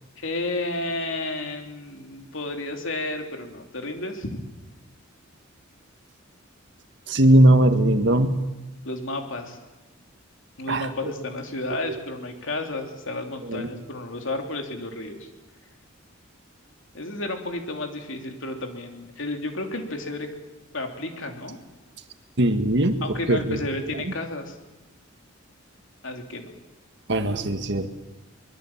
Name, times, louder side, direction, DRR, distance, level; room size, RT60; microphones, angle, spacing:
voice 1, 0.2-4.4 8.8-9.6 10.6-15.3 16.9-20.3 20.7-21.6 23.0-24.5 26.0-26.5, left 2 dB, 65° left, 4 dB, 3.3 m, -32 dB
voice 2, 7.1-8.4 10.7-10.8 13.5-13.7 22.4-23.6 27.1-27.9, right 1 dB, 60° right, 8 dB, 1.7 m, -19 dB
24.0 x 21.5 x 7.4 m, 1.1 s
head